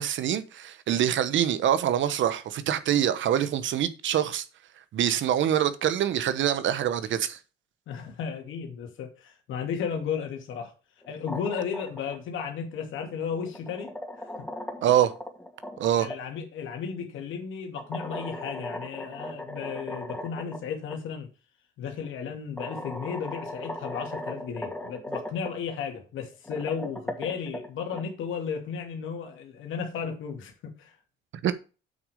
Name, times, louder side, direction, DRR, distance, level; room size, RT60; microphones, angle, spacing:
voice 1, 0.0-4.4 4.9-7.4 14.8-15.1 15.8-16.1 31.4-31.5, right 10 dB, 70° right, 1.1 m, -25 dB
voice 2, 7.9-10.7 11.1-13.9 14.2-14.5 16.0-21.3 21.8-31.0, left 6 dB, 80° left, 2.4 m, -34 dB
sound 1, 11.0-12.2 13.3-16.2 17.8-20.6 20.9-21.0 22.0-22.1 22.6-25.5 26.3-28.0, left 1 dB, 10° left, 2.4 m, -37 dB
8.0 x 6.3 x 5.0 m
cardioid pair, 90°, 20 cm